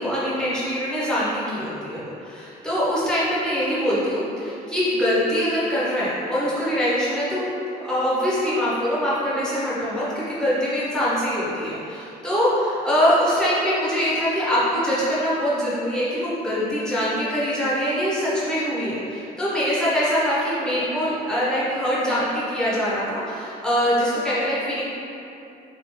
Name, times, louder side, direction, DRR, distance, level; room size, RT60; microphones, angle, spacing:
voice 1, 0.0-7.4 7.8-24.8, equal, 5° left, -9 dB, 1.4 m, -23 dB
3.8 x 3.0 x 4.0 m, 2.8 s
cardioid pair, 110°, 17 cm